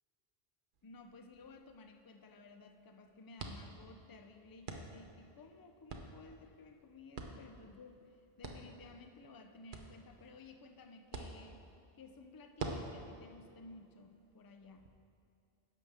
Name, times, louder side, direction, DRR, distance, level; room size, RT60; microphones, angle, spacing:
sound 1, 0.7-14.9, right 3 dB, 55° right, 0.9 m, -50 dB
voice 1, 0.8-11.6 12.0-14.9, left 3 dB, 35° left, 6 dB, 0.3 m, -56 dB
11.0 x 7.3 x 3.5 m, 2.6 s
omnidirectional pair, 1.0 m